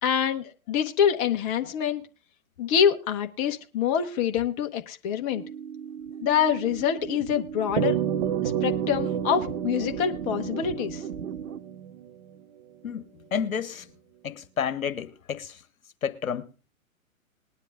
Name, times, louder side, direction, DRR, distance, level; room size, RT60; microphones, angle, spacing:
voice 1, 0.0-2.0 2.6-5.4 6.2-8.0 8.6-11.0, left 8 dB, 25° left, 1.0 m, -25 dB
sound 1, 5.3-11.6, right 8 dB, 75° right, 1.0 m, -37 dB
sound 2, 7.8-12.4, right 10 dB, 30° right, 0.7 m, -30 dB
voice 2, 12.8-13.9 14.2-15.6 16.0-16.5, left 7 dB, 70° left, 1.2 m, -31 dB
20.0 x 10.5 x 2.4 m
figure-of-eight pair, 125°, 42 cm